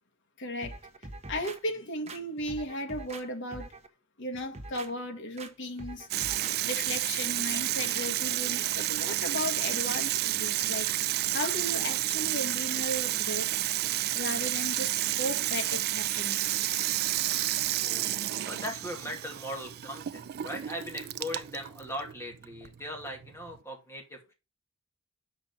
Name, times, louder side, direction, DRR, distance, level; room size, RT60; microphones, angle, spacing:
voice 1, 0.4-0.8 1.3-3.7 4.2-6.1 6.6-10.9 11.3-13.5 14.1-16.5, left 1 dB, 60° left, 1.4 m, -35 dB
sound 1, 0.6-1.6 2.1-3.2 3.5-3.9 4.3-4.9 5.4-5.5 5.8-6.6 6.9-7.0, right 2 dB, 30° right, 1.0 m, -43 dB
Water tap faucet / Sink (filling or washing), 6.1-23.6, right 14 dB, 45° right, 0.3 m, -31 dB
voice 2, 17.8-24.3, equal, 15° left, 2.3 m, -39 dB
6.1 x 5.1 x 6.8 m
head